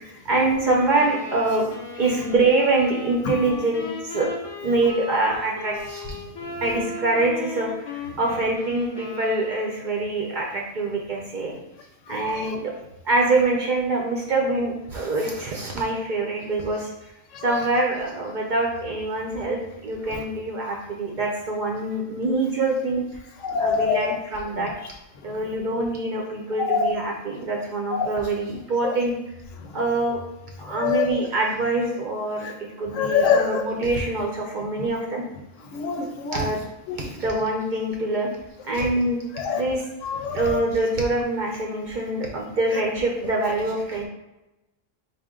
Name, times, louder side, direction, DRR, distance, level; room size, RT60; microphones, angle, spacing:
voice 1, 0.0-1.7 2.0-4.3 4.6-6.2 6.6-11.5 12.1-12.7 13.0-16.9 17.4-23.1 23.6-24.7 25.2-29.1 29.7-30.2 30.6-35.2 36.3-36.6 37.0-38.3 38.6-39.8 40.3-44.1, right 2 dB, 55° right, -1 dB, 0.6 m, -25 dB
Wind instrument woodwind instrument, 0.9-10.0, left 2 dB, 35° left, 0.4 m, -37 dB
voice 2, 23.4-24.0 26.6-26.9 27.9-28.1 28.8-28.9 30.7-31.2 32.9-33.6 35.7-36.5 36.9-37.1 39.4-39.6 40.0-40.6, left 6 dB, 85° left, 4 dB, 0.9 m, -24 dB
4.1 x 2.4 x 3.6 m, 0.97 s
omnidirectional pair, 1.3 m